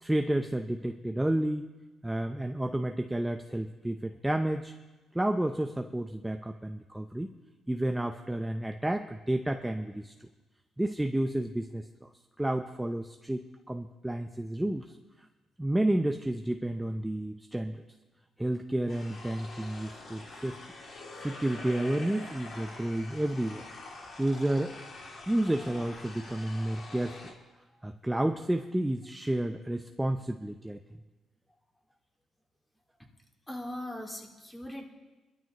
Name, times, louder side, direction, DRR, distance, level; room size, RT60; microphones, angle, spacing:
voice 1, 0.0-1.7 2.0-4.7 5.1-7.3 7.7-10.1 10.8-12.1 12.4-15.0 15.6-17.8 18.4-20.6 21.2-23.7 24.2-24.8 25.3-27.2 27.8-30.8, right 1 dB, 10° right, 5 dB, 0.6 m, -31 dB
sound 1, 18.9-27.3, left 2 dB, 55° left, 2.6 m, -45 dB
voice 2, 33.5-34.8, left 1 dB, 15° left, 0 dB, 2.2 m, -39 dB
22.0 x 12.5 x 3.0 m, 1.1 s
cardioid pair, 90°, 0 cm